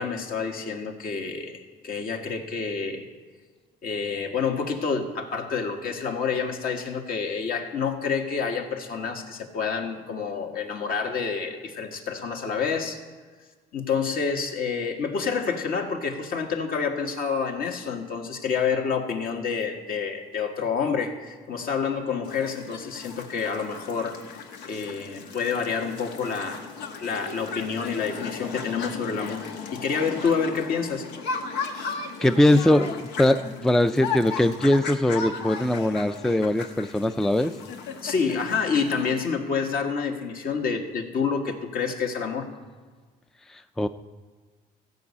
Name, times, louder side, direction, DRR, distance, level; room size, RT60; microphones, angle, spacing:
voice 1, 0.0-3.1 3.8-13.0 13.7-24.2 24.6-26.6 27.0-29.5 29.7-31.0 38.0-42.5, left 5 dB, 60° left, 3 dB, 1.7 m, -28 dB
sound 1, 22.2-39.2, left 5 dB, 85° left, 1.2 m, -36 dB
voice 2, 32.2-37.5 43.5-43.9, left 1 dB, 5° left, 10 dB, 0.4 m, -21 dB
15.0 x 5.4 x 8.4 m, 1.4 s
cardioid pair, 110°, 17 cm